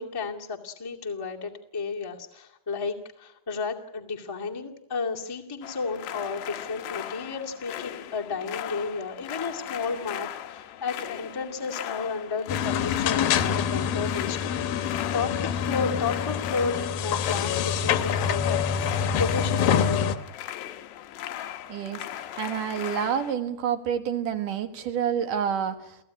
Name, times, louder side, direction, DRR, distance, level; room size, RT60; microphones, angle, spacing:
voice 1, 0.0-18.6 19.1-20.1, left 4 dB, 10° left, 0 dB, 1.1 m, -32 dB
sound 1, 5.6-23.4, left 12 dB, 85° left, 3.3 m, -38 dB
sound 2, 12.5-20.2, left 8 dB, 70° left, 2.7 m, -26 dB
voice 2, 21.7-22.1 22.4-26.0, right 8 dB, 60° right, 8 dB, 2.7 m, -28 dB
29.5 x 17.0 x 9.8 m, 0.83 s
omnidirectional pair, 4.7 m